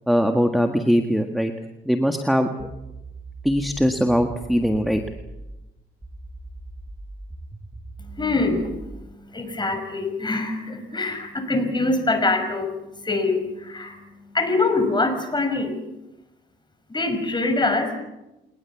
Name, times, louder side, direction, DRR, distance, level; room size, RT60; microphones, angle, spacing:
voice 1, 0.1-1.5 1.8-2.7 3.4-5.0, equal, ahead, 5 dB, 1.7 m, -21 dB
sound 1, 2.6-5.6 6.0-9.0, right 2 dB, 15° right, 5.5 m, -40 dB
voice 2, 8.0-15.8 16.9-18.0, left 2 dB, 25° left, 8 dB, 6.0 m, -24 dB
28.5 x 20.0 x 7.3 m, 0.97 s
cardioid pair, 90°, 20 cm